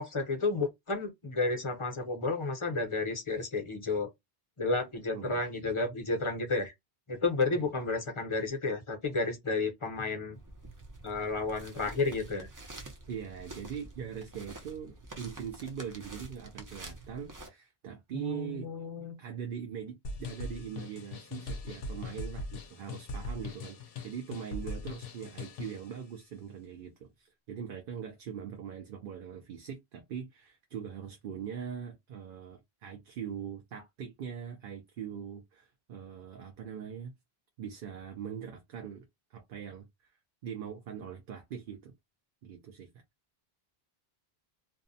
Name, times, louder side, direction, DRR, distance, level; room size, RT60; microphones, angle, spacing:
voice 1, 0.0-4.1 4.6-6.7 7.1-10.4 11.0-12.5 18.1-19.2, left 3 dB, 35° left, 0.6 m, -32 dB
sound 1, 10.3-17.5, right 2 dB, 30° right, 0.4 m, -48 dB
voice 2, 13.1-18.7 19.2-23.8 24.0-37.1 37.6-39.0 39.3-39.9 40.4-41.9 42.4-43.0, right 8 dB, 65° right, 0.7 m, -41 dB
sound 2, 20.0-25.9, left 3 dB, 70° left, 0.8 m, -40 dB
2.6 x 2.0 x 2.6 m
omnidirectional pair, 1.0 m